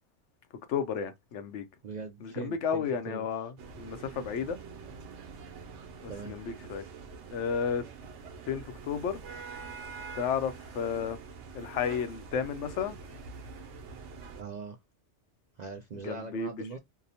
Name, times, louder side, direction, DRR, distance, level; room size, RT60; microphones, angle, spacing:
voice 1, 0.7-1.6 2.2-4.6 6.0-6.9 7.3-7.8 8.5-9.2 10.1-11.2 11.5-13.0 16.0-16.5, left 7 dB, 80° left, 0.9 m, -32 dB
voice 2, 1.8-3.3 6.1-6.4 14.3-14.8 15.6-16.8, right 4 dB, 60° right, 0.4 m, -41 dB
sound 1, 3.6-14.4, right 5 dB, 85° right, 1.0 m, -45 dB
2.8 x 2.0 x 2.7 m
omnidirectional pair, 1.2 m